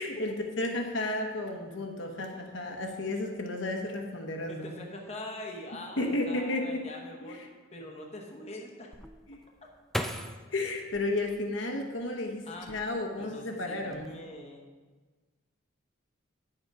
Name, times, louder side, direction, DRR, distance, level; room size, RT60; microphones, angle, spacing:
voice 1, 0.0-4.7 6.0-6.8 7.2-7.4 9.3-9.4 10.5-12.4 12.7-14.1, left 2 dB, 65° left, 2 dB, 1.1 m, -33 dB
voice 2, 4.5-7.4 7.7-8.9 12.4-12.7 13.2-14.7, left 1 dB, 30° left, 0 dB, 1.0 m, -43 dB
sound 1, 8.9-12.0 12.5-13.3 13.6-14.1, equal, ahead, 0.4 m, -39 dB
9.6 x 6.7 x 4.8 m, 1.4 s
head